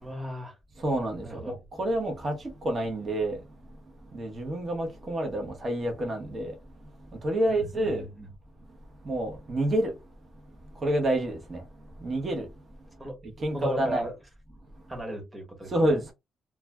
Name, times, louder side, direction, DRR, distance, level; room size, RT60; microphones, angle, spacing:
voice 1, 0.0-0.6 1.2-1.5 7.5-8.3 13.0-13.2 13.5-14.1 14.9-16.0, right 1 dB, 20° right, 1.2 m, -36 dB
voice 2, 0.8-1.2 1.8-2.3 2.6-3.4 4.1-6.5 7.2-8.0 9.1-9.9 10.8-11.6 12.0-12.4 13.4-14.0 15.7-16.1, right 1 dB, 35° right, 0.9 m, -28 dB
2.4 x 2.2 x 3.3 m
cardioid pair, 90°, 0 cm